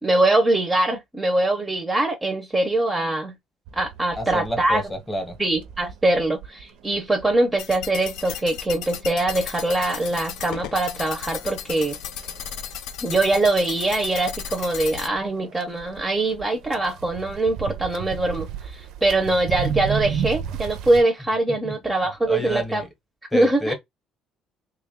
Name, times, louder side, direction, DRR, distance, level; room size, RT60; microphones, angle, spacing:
voice 1, 0.0-3.3 3.7-4.8 5.4-12.0 13.0-22.8 23.3-23.7, right 2 dB, 10° right, 0.6 m, -23 dB
sound 1, 3.7-21.0, right 7 dB, 70° right, 0.5 m, -36 dB
voice 2, 4.2-5.4 21.6-21.7 22.2-22.9 23.3-23.7, equal, 10° left, 0.9 m, -29 dB
sound 2, 7.6-15.1, left 9 dB, 80° left, 0.5 m, -35 dB
3.4 x 2.3 x 3.5 m
cardioid pair, 165°, 0 cm